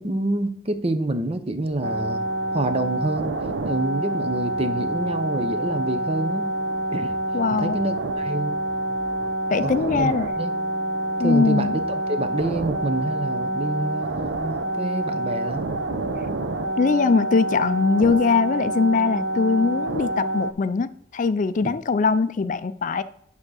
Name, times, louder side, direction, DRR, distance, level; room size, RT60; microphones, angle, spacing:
voice 1, 0.0-2.2 2.5-3.3 3.6-6.5 6.9-7.1 7.5-8.6 9.6-10.1 10.4-10.5 11.2-11.8 12.1-15.7 21.6-21.7, right 2 dB, 35° right, 0.6 m, -27 dB
sound 1, 1.7-11.8, left 1 dB, 30° left, 1.3 m, -49 dB
sound 2, 1.8-20.5, right 1 dB, 80° right, 0.8 m, -27 dB
voice 2, 7.3-7.8 9.5-10.3 11.2-11.8 16.8-23.0, left 4 dB, 45° left, 0.4 m, -21 dB
9.0 x 3.6 x 6.3 m
head